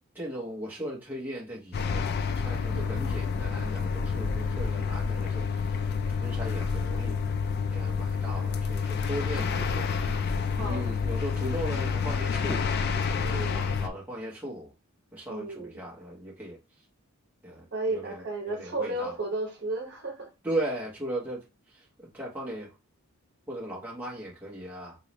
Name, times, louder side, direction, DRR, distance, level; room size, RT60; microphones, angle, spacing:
voice 1, 0.2-2.0 2.4-5.4 6.2-7.2 7.7-9.8 10.6-12.6 13.5-14.7 15.1-16.6 17.4-17.6 17.9-18.0 18.5-19.1 20.4-21.4 22.1-22.7 23.5-24.9, right 1 dB, 10° right, 0.8 m, -37 dB
sound 1, 1.7-13.9, left 5 dB, 45° left, 0.3 m, -29 dB
voice 2, 2.7-3.0 9.3-9.9 10.6-11.0 13.2-13.6 15.3-15.8 17.7-20.3, right 2 dB, 50° right, 1.0 m, -34 dB
3.9 x 2.3 x 3.1 m
head